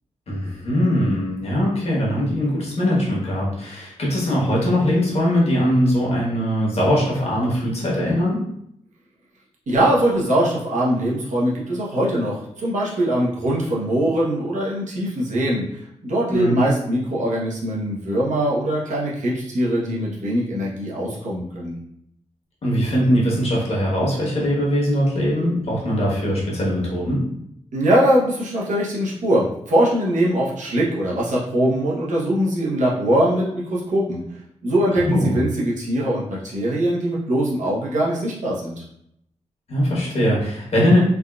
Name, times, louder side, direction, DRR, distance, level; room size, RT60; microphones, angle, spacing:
voice 1, 0.3-8.4 16.3-16.7 22.6-27.3 35.0-35.4 39.7-41.0, equal, 55° left, -5 dB, 1.1 m, -21 dB
voice 2, 9.7-21.8 27.7-34.2 34.6-38.8, right 1 dB, 85° right, -5 dB, 0.9 m, -22 dB
3.5 x 2.4 x 2.3 m, 0.75 s
wide cardioid pair, 150°, 13 cm